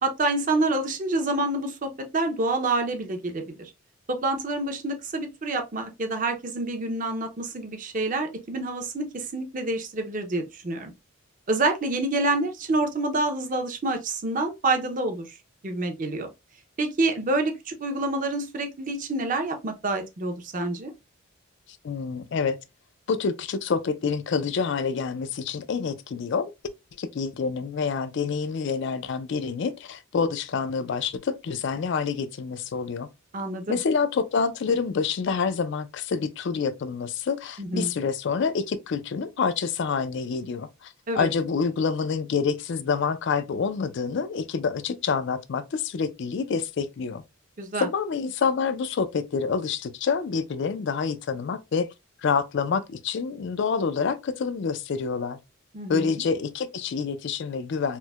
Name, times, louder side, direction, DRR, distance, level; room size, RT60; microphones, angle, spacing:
voice 1, 0.0-3.7 4.1-10.9 11.5-15.4 15.6-16.3 16.8-20.9 33.3-33.8 37.6-37.9 41.1-41.3 47.6-47.9 55.7-56.1, right 2 dB, 35° right, 0.6 m, -27 dB
voice 2, 21.8-22.6 23.1-26.5 27.0-33.1 33.7-47.2 47.8-51.9 52.2-55.4 55.9-58.0, left 5 dB, 55° left, 0.3 m, -27 dB
4.4 x 2.1 x 2.2 m
head